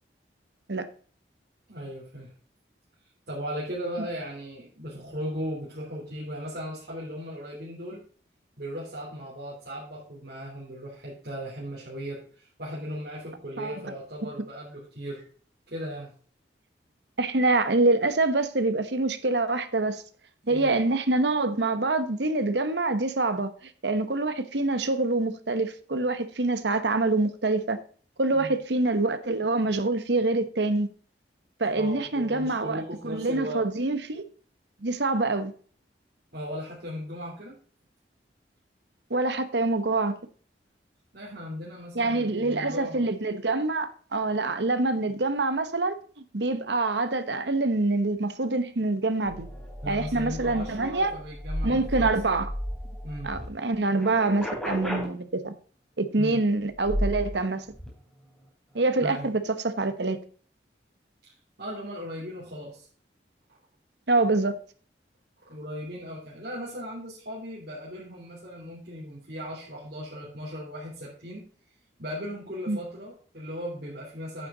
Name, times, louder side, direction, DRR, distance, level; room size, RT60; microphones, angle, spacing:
voice 1, 1.7-2.3 3.3-8.0 8.6-15.2 15.7-16.1 20.4-20.8 28.3-28.5 31.8-33.6 36.3-37.5 41.1-43.0 49.8-52.1 53.0-53.3 56.2-56.4 59.0-59.3 61.6-62.9 65.4-71.4 72.0-74.5, equal, 60° right, 3.3 m, -37 dB
voice 2, 13.6-13.9 14.2-14.3 17.2-20.0 20.5-23.5 23.8-27.8 28.2-30.9 31.6-34.2 34.8-35.5 39.1-40.2 41.9-49.5 49.9-51.2 51.6-52.5 53.2-55.5 56.0-57.6 58.7-60.2 64.1-64.5 72.7-72.8, right 2 dB, 75° right, 1.1 m, -25 dB
sound 1, 49.2-53.5 53.8-55.0 56.7-57.4 57.7-57.9, equal, ahead, 3.7 m, -34 dB
9.2 x 7.9 x 3.9 m
head